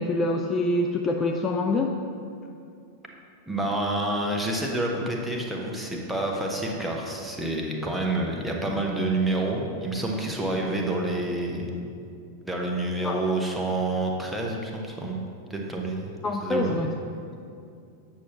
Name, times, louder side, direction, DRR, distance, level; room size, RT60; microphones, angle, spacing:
voice 1, 0.0-2.0 13.0-13.2 16.2-16.9, left 2 dB, 20° left, 3 dB, 0.3 m, -25 dB
voice 2, 3.5-11.7 12.4-15.2 15.5-16.1 16.4-16.8, right 2 dB, 5° right, -1 dB, 0.9 m, -28 dB
8.4 x 6.2 x 3.0 m, 2.5 s
figure-of-eight pair, 90°, 0 cm